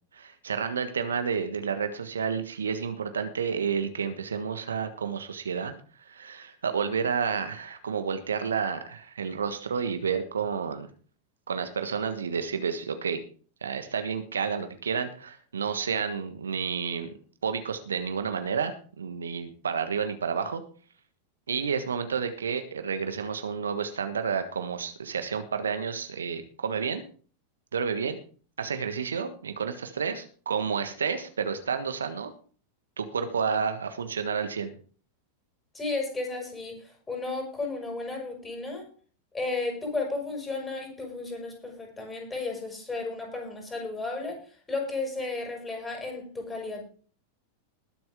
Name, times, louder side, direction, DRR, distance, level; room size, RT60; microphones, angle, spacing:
voice 1, 0.1-5.7 6.1-10.9 11.5-13.2 13.6-17.1 17.4-20.6 21.5-27.0 27.7-28.2 28.6-32.3 33.0-34.7, right 6 dB, 70° right, 8 dB, 1.5 m, -30 dB
voice 2, 35.7-38.8 39.3-44.4 44.7-46.8, left 3 dB, 15° left, 1 dB, 5.9 m, -33 dB
20.5 x 7.8 x 3.7 m, 0.41 s
figure-of-eight pair, 90°, 0 cm